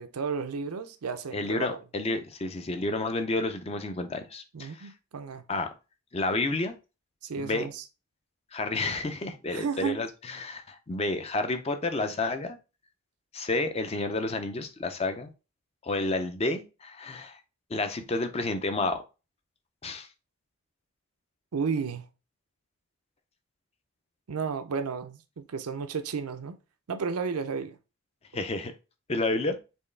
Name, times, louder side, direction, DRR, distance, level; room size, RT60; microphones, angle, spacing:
voice 1, 0.0-1.8 4.5-5.4 7.2-7.8 9.5-10.0 21.5-22.1 24.3-26.6 26.9-27.8, right 5 dB, 85° right, 0.5 m, -33 dB
voice 2, 1.3-4.9 5.5-5.7 6.1-6.8 7.3-7.7 8.5-12.6 13.3-15.3 15.8-17.4 17.7-19.0 19.8-20.1 28.3-28.7 29.1-29.6, left 2 dB, 25° left, 0.4 m, -30 dB
4.5 x 3.1 x 3.2 m
head